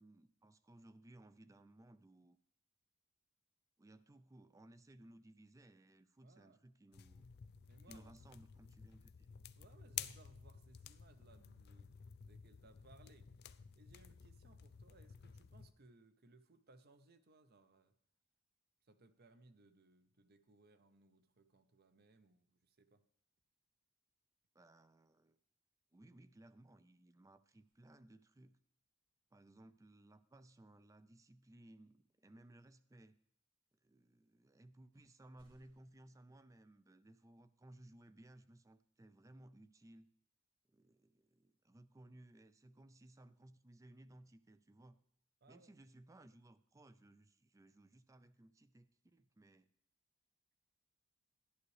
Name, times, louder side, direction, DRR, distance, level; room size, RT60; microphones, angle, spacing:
voice 1, 0.0-2.4 3.8-7.2 7.9-9.3 24.5-25.4 25.9-28.6 29.3-33.2 33.8-40.1 40.7-45.0 45.5-49.7, right 1 dB, 15° right, 13 dB, 0.4 m, -61 dB
voice 2, 6.2-6.6 7.7-8.1 9.5-11.9 12.2-13.3 13.7-17.9 18.8-23.0 45.4-45.7, right 2 dB, 50° right, 10 dB, 0.7 m, -66 dB
sound 1, 6.9-15.7, left 9 dB, 50° left, 0.4 m, -52 dB
sound 2, 34.9-36.0, equal, 85° right, 3.1 m, -77 dB
11.0 x 11.0 x 3.2 m, 0.73 s
head